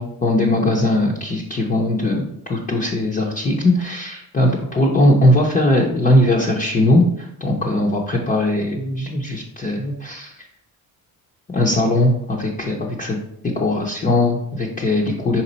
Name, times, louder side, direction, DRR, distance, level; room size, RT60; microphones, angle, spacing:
voice 1, 0.0-10.3 11.5-13.2 13.5-15.4, left 1 dB, 20° left, -3 dB, 0.7 m, -19 dB
5.7 x 4.3 x 4.0 m, 0.75 s
cardioid pair, 170°, 38 cm